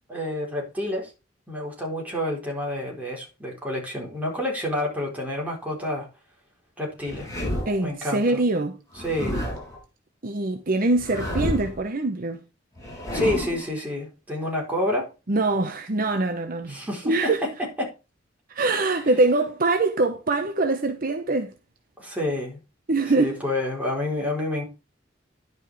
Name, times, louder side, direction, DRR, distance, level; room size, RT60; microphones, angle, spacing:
voice 1, 0.1-1.1 1.5-6.1 6.8-7.3 7.8-8.4 9.0-9.4 13.1-15.1 16.7-17.3 17.8-17.9 22.0-22.6 23.2-24.6, left 1 dB, 10° right, 4.2 m, -28 dB
sound 1, 7.0-7.9 8.9-9.8 10.9-11.8 12.8-13.7, equal, 20° left, 5.5 m, -30 dB
voice 2, 7.7-8.8 10.2-12.4 15.3-17.4 18.5-21.5 22.9-23.4, right 2 dB, 50° right, 0.9 m, -23 dB
11.0 x 5.4 x 4.8 m
head